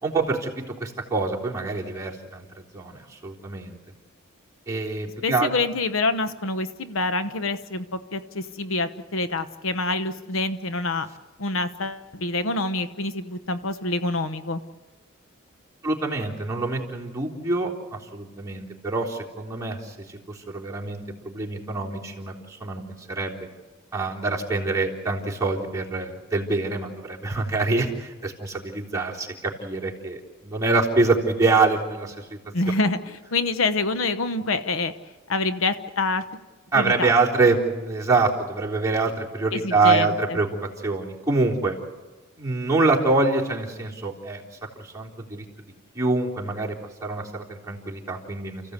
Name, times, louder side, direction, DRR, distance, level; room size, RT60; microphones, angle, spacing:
voice 1, 0.0-3.8 4.7-5.5 15.8-22.8 23.1-23.5 23.9-32.4 36.7-40.5 40.8-41.8 42.4-44.4 44.8-45.4 46.0-46.8 47.0-48.6, right 3 dB, 15° right, -4 dB, 3.6 m, -25 dB
voice 2, 5.2-11.1 11.4-14.6 32.5-34.9 35.3-36.2 36.7-37.1 39.5-40.4, left 3 dB, 70° left, 10 dB, 1.0 m, -26 dB
29.5 x 15.5 x 8.3 m, 1.2 s
head